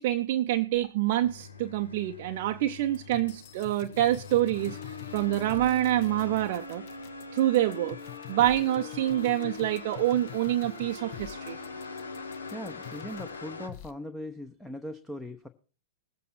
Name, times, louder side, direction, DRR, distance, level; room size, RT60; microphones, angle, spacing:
voice 1, 0.0-6.8 7.3-8.0 8.3-11.6, right 13 dB, 45° right, 6 dB, 0.6 m, -26 dB
sound 1, 1.2-13.7, left 4 dB, 75° left, 1.5 m, -42 dB
sound 2, 2.9-13.4 13.7-13.9, left 14 dB, 45° left, 1.0 m, -47 dB
voice 2, 12.5-15.5, left 1 dB, 5° left, 8 dB, 0.9 m, -39 dB
20.0 x 8.4 x 4.3 m, 0.36 s
figure-of-eight pair, 100°, 0 cm